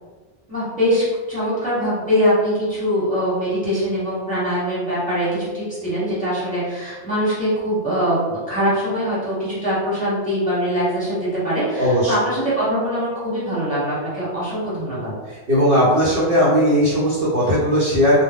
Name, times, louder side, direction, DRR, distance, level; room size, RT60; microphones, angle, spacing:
voice 1, 0.5-15.1, equal, 5° left, -10 dB, 1.1 m, -22 dB
voice 2, 11.8-12.1 15.5-18.2, equal, 60° right, -8 dB, 0.9 m, -17 dB
2.2 x 2.1 x 3.4 m, 1.3 s
omnidirectional pair, 1.2 m